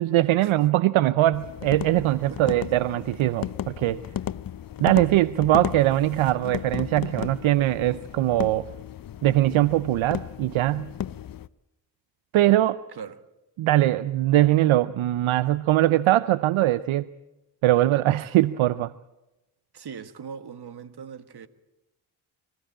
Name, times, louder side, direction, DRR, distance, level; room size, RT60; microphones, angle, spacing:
voice 1, 0.0-4.0 4.8-8.7 9.2-10.9 12.3-12.8 13.6-17.1 17.6-18.9, right 15 dB, 75° right, 0.7 m, -21 dB
sound 1, 1.3-11.5, left 10 dB, 45° left, 0.7 m, -35 dB
voice 2, 2.3-2.6 12.9-13.3 19.7-21.5, right 7 dB, 50° right, 1.6 m, -40 dB
25.5 x 15.0 x 8.8 m
supercardioid pair, 60°, 48 cm